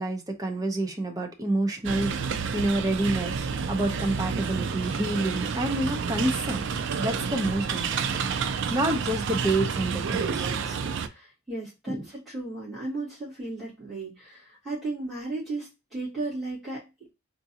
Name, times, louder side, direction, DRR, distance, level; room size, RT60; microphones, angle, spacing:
voice 1, 0.0-6.7 7.0-10.8 11.9-12.0, right 1 dB, 15° right, 0.7 m, -28 dB
sound 1, 1.8-11.1, right 6 dB, 60° right, 0.4 m, -30 dB
voice 2, 11.0-16.9, right 2 dB, ahead, 2.1 m, -35 dB
3.7 x 2.6 x 2.7 m
head